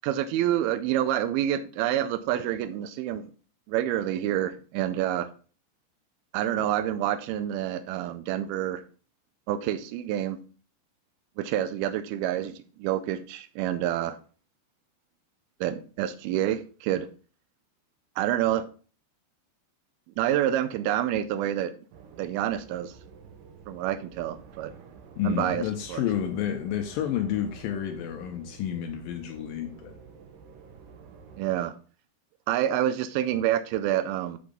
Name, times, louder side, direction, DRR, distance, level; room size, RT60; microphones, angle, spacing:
voice 1, 0.0-3.3 3.7-5.3 6.3-8.8 9.5-10.4 11.4-14.2 15.6-17.1 18.2-18.7 20.2-21.7 22.2-22.9 23.7-24.7 25.2-25.6 25.9-26.0 31.4-31.7 32.5-34.4, right 12 dB, 90° right, 2.1 m, -27 dB
sound 1, 21.9-31.6, right 6 dB, 70° right, 2.2 m, -50 dB
voice 2, 25.2-29.9, left 10 dB, 90° left, 2.0 m, -30 dB
6.4 x 6.0 x 5.1 m
omnidirectional pair, 5.0 m